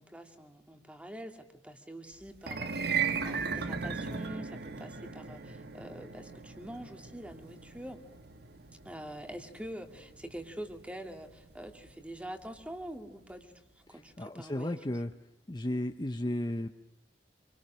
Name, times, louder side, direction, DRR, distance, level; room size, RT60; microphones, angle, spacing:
voice 1, 0.0-8.0 8.8-14.8, right 1 dB, 5° right, 5 dB, 2.2 m, -45 dB
sound 1, 2.4-12.7, right 5 dB, 65° right, 1.3 m, -38 dB
voice 2, 13.9-15.1 15.5-16.7, left 1 dB, 25° left, 6 dB, 0.9 m, -34 dB
27.5 x 25.0 x 6.3 m, 0.85 s
head